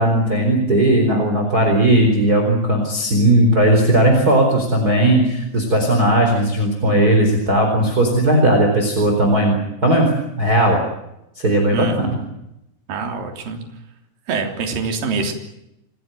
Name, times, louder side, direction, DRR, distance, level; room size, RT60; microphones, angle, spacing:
voice 1, 0.0-10.8 11.4-11.9, right 1 dB, 20° right, 2 dB, 4.3 m, -16 dB
voice 2, 11.7-12.3 12.9-13.6 14.3-15.3, right 4 dB, 55° right, 4 dB, 4.8 m, -25 dB
28.5 x 17.0 x 9.2 m, 0.85 s
omnidirectional pair, 5.0 m